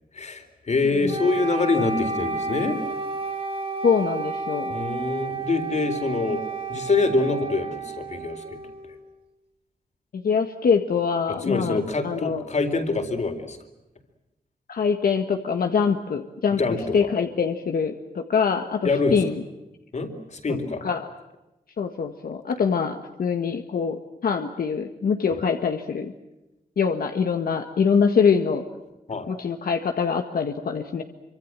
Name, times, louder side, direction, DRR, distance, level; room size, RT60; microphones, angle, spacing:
voice 1, 0.1-2.8 4.7-6.4 6.7-8.6 11.5-13.6 16.6-17.1 18.8-19.2 19.9-20.8 25.3-25.4 29.1-29.3, left 3 dB, 50° left, 7 dB, 4.1 m, -25 dB
Wind instrument woodwind instrument, 1.1-9.1, right 4 dB, 40° right, 4.2 m, -31 dB
voice 2, 3.8-4.7 10.1-12.4 14.7-19.4 20.5-21.1 21.8-26.1 26.8-28.7 29.3-31.0, left 6 dB, 85° left, 5 dB, 1.8 m, -24 dB
27.0 x 25.5 x 7.6 m, 0.99 s
wide cardioid pair, 120°, 15 cm